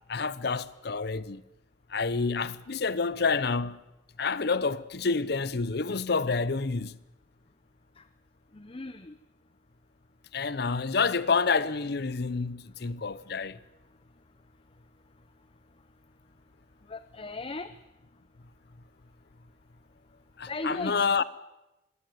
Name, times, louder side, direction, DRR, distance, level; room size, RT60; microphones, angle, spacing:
voice 1, 0.1-1.4 1.9-3.8 4.2-6.9 10.3-13.6 20.4-21.2, left 4 dB, 60° left, 0.8 m, -28 dB
voice 2, 8.5-9.2 16.9-17.7 20.5-21.2, left 2 dB, 30° left, 0.7 m, -37 dB
21.0 x 17.0 x 9.3 m
head